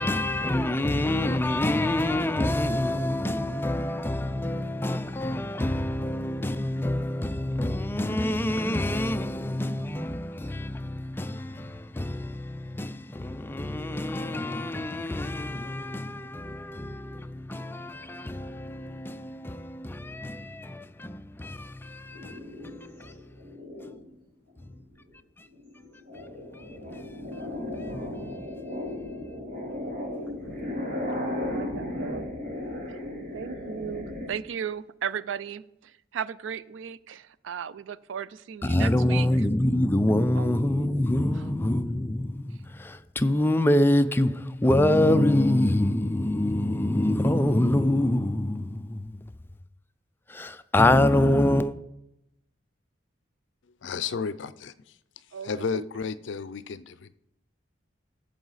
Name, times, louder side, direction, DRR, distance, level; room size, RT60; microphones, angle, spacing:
voice 1, 0.0-23.1 26.9-27.0 38.6-49.2 50.3-51.8, left 1 dB, 10° left, 0.4 m, -26 dB
sound 1, 22.1-24.1 24.7-25.1 25.5-34.3, left 1 dB, 50° right, 3.7 m, -35 dB
voice 2, 31.3-32.2 33.3-35.6 36.1-39.3 40.4-40.5 55.3-55.8, right 7 dB, 80° right, 0.4 m, -35 dB
voice 3, 53.8-54.9 55.4-57.1, left 5 dB, 70° left, 0.5 m, -33 dB
14.0 x 6.9 x 4.0 m
head